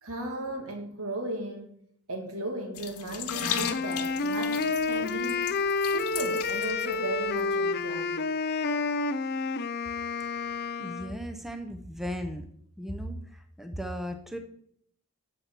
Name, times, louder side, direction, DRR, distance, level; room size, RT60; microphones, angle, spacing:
voice 1, 0.0-1.8 2.1-5.4 5.9-8.2, right 1 dB, 70° right, 2.2 m, -36 dB
sound 1, 2.7-7.0 7.3-7.4, left 9 dB, 85° left, 1.2 m, -36 dB
Wind instrument woodwind instrument, 3.3-11.2, left 4 dB, 45° left, 0.5 m, -29 dB
voice 2, 10.8-12.5 12.8-14.4, equal, ahead, 0.7 m, -36 dB
8.4 x 7.5 x 6.0 m
head